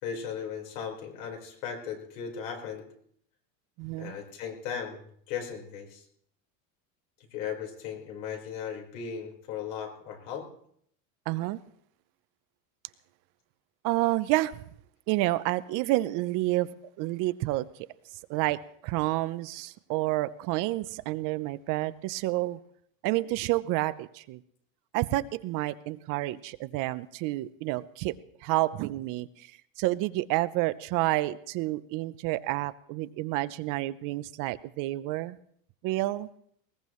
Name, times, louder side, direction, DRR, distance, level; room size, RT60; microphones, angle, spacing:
voice 1, 0.0-2.9 4.0-6.0 7.3-10.5, left 7 dB, 70° left, 2 dB, 4.6 m, -37 dB
voice 2, 3.8-4.2 11.3-11.6 13.8-14.5 15.1-16.7 17.0-17.7 18.3-18.6 18.8-22.6 23.0-24.4 24.9-29.5 29.8-35.4 35.8-36.3, right 18 dB, 50° right, 15 dB, 0.7 m, -29 dB
20.5 x 18.5 x 3.1 m, 0.67 s
supercardioid pair, 135°, 41 cm